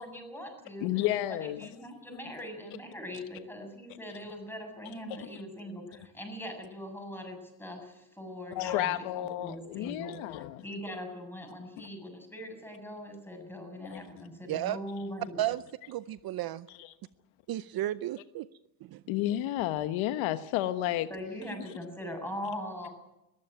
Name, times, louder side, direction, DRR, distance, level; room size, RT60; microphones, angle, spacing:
voice 1, 0.0-15.4 21.1-22.9, equal, 5° left, 3 dB, 7.6 m, -41 dB
voice 2, 0.8-1.6 8.5-10.6 11.8-11.9 13.9-14.1 16.8-16.9 19.1-21.1, left 14 dB, 80° left, 11 dB, 1.2 m, -31 dB
voice 3, 14.5-14.8 15.4-15.6 15.9-16.7 17.5-18.5 18.9-19.0, right 13 dB, 50° right, 16 dB, 0.6 m, -33 dB
22.0 x 14.5 x 9.0 m, 0.93 s
cardioid pair, 110°, 46 cm